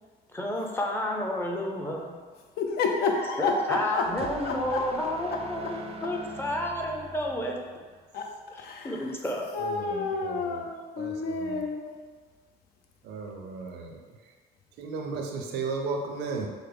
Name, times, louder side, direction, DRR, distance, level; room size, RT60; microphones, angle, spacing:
voice 1, 0.3-2.1 3.4-7.6 8.6-9.5, left 1 dB, 15° left, 0 dB, 0.5 m, -31 dB
voice 2, 2.6-4.9 5.3-5.7 8.1-9.2 9.5-11.9, left 4 dB, 70° left, 3 dB, 0.5 m, -30 dB
sound 1, 3.5-8.1, right 3 dB, 35° right, 0.4 m, -44 dB
voice 3, 9.6-10.7 11.0-11.6 13.0-14.0 14.8-16.5, right 4 dB, 85° right, 2 dB, 0.6 m, -35 dB
4.7 x 2.0 x 3.4 m, 1.5 s
cardioid pair, 110°, 17 cm